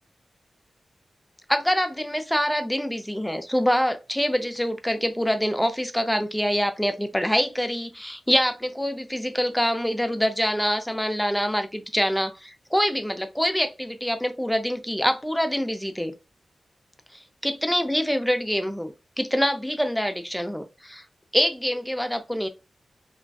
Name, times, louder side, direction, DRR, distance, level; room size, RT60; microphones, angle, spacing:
voice 1, 1.5-16.1 17.1-21.0 21.3-22.5, equal, 5° left, 0.4 m, -25 dB
3.4 x 2.4 x 2.3 m
wide cardioid pair, 130°, 0 cm